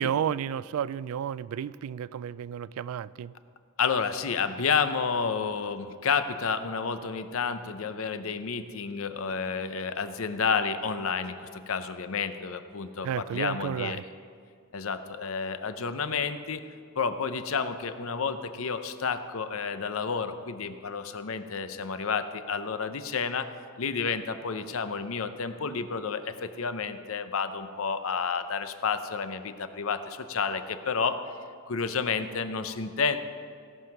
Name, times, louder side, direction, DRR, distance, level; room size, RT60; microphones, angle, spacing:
voice 1, 0.0-3.3 13.0-14.0, right 9 dB, 85° right, 18 dB, 0.3 m, -31 dB
voice 2, 3.8-14.0 14.7-16.6 17.0-23.5 23.8-31.2 31.7-33.2, left 5 dB, 75° left, 10 dB, 0.7 m, -30 dB
17.0 x 5.6 x 5.9 m, 2.2 s
head